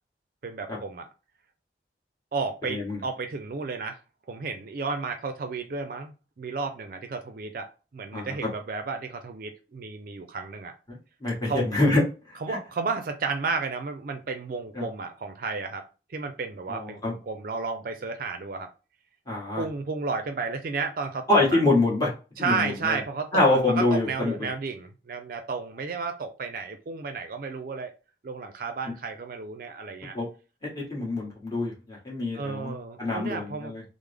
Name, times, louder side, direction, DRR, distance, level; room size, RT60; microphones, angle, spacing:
voice 1, 0.4-1.1 2.3-4.0 4.3-6.1 6.4-10.7 11.4-11.6 12.4-18.7 19.6-21.6 22.4-27.9 28.2-30.2 32.3-33.7, right 4 dB, 50° right, 7 dB, 0.4 m, -32 dB
voice 2, 2.7-3.0 8.1-8.3 11.2-12.0 12.3-12.6 14.7-14.8 16.7-17.1 19.3-19.7 21.3-22.1 22.4-23.0 23.3-24.5 30.1-30.2 30.6-33.8, left 2 dB, 20° left, -4 dB, 1.4 m, -25 dB
3.4 x 2.0 x 3.3 m, 0.32 s
head